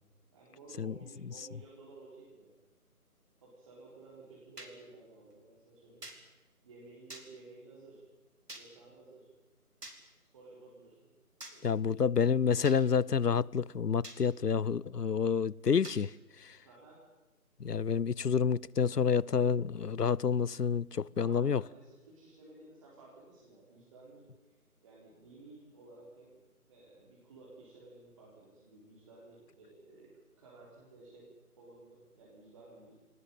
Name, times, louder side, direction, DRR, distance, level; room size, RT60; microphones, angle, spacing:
voice 1, 0.3-2.6 3.4-6.1 6.6-8.1 8.5-9.3 10.2-11.1 11.5-12.1 16.6-17.0 21.2-24.5 24.8-26.4 26.7-30.1 30.4-31.3 31.6-33.0, right 2 dB, 20° right, 4.2 m, -55 dB
sound 1, 4.6-4.7 6.0-6.2 7.1-7.3 8.5-8.7 9.8-10.0 11.4-11.6 12.6-12.8 14.0-14.2 15.8-16.0, right 2 dB, 85° right, 4.6 m, -46 dB
voice 2, 11.6-16.6 17.6-21.6, left 6 dB, 90° left, 0.8 m, -29 dB
24.0 x 19.0 x 9.2 m
figure-of-eight pair, 160°, 46 cm